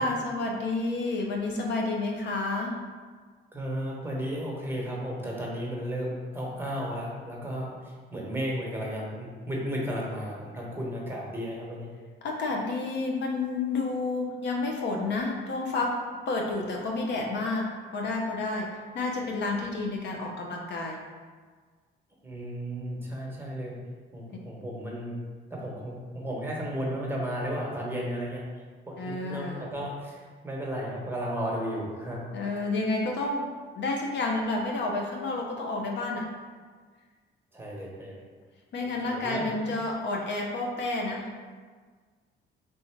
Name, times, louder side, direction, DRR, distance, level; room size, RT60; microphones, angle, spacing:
voice 1, 0.0-2.8 12.2-15.9 16.1-21.0 29.0-29.7 32.3-33.4 33.7-36.3 38.7-41.3, left 2 dB, 65° left, 0 dB, 0.7 m, -30 dB
voice 2, 3.5-11.9 22.2-23.8 24.1-25.2 25.5-28.4 28.9-32.3 37.5-38.2 38.8-39.6, equal, 10° right, -3 dB, 1.1 m, -34 dB
3.5 x 2.8 x 4.4 m, 1.5 s
cardioid pair, 90°, 20 cm